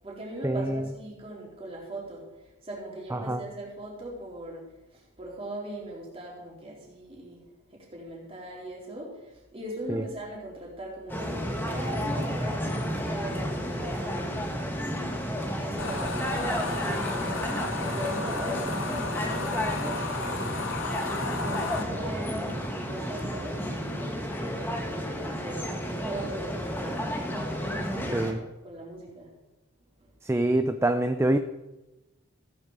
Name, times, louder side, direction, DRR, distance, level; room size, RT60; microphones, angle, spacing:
voice 1, 0.0-7.4 7.7-15.0 15.6-17.4 17.8-20.8 21.1-29.3 30.0-30.1, right 1 dB, 25° right, -4 dB, 3.8 m, -40 dB
sound 1, 11.1-28.3, equal, 10° left, 1.4 m, -31 dB
sound 2, 15.8-21.8, left 3 dB, 70° left, 1.2 m, -34 dB
voice 2, 30.2-31.4, right 1 dB, 10° right, 8 dB, 0.4 m, -25 dB
15.5 x 9.4 x 4.9 m, 1.0 s
head